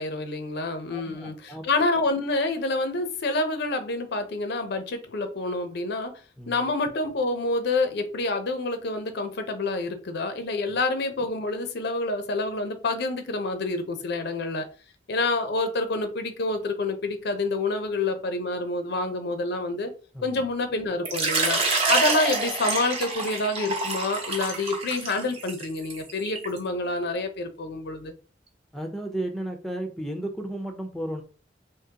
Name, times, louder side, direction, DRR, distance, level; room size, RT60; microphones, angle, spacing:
voice 1, 0.0-6.1 6.5-14.7 15.1-19.9 20.2-21.6 21.9-28.1, left 2 dB, 60° left, 0.6 m, -27 dB
voice 2, 0.9-1.6 6.4-6.7 20.1-20.5 28.7-31.2, right 1 dB, ahead, 0.6 m, -34 dB
Water / Liquid, 21.0-26.6, right 3 dB, 35° right, 0.9 m, -27 dB
3.6 x 2.9 x 2.8 m
head